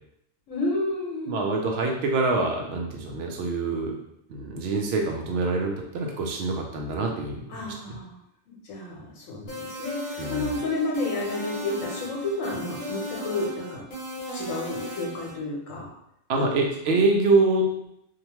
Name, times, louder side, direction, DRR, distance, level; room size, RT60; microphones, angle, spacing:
voice 1, 0.5-1.5 7.5-8.2 8.5-13.8 14.3-15.9 16.5-16.9, left 2 dB, 75° left, -2 dB, 1.1 m, -31 dB
voice 2, 1.3-4.0 4.3-7.4 10.2-10.6 16.3-17.9, right 3 dB, 65° right, 1 dB, 0.7 m, -25 dB
sound 1, 9.5-15.3, equal, 45° left, 0.9 m, -36 dB
2.7 x 2.1 x 2.9 m, 0.78 s
omnidirectional pair, 1.4 m